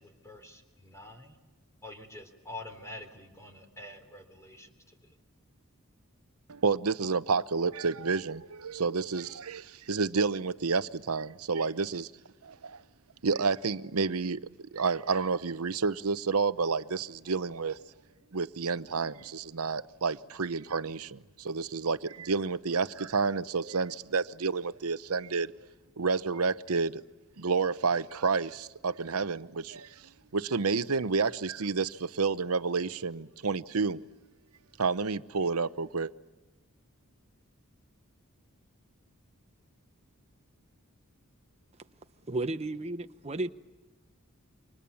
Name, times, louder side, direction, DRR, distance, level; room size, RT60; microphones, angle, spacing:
voice 1, 0.0-1.4 1.8-5.2, left 2 dB, 15° left, 3.6 m, -47 dB
voice 2, 6.5-12.1 12.4-12.8 13.2-14.4 14.7-17.8 18.3-25.5 26.0-27.0 27.4-29.9 30.3-34.0 34.8-36.1, right 4 dB, 75° right, 0.9 m, -30 dB
voice 3, 42.2-43.5, right 2 dB, 30° right, 0.9 m, -33 dB
29.0 x 25.5 x 7.1 m
head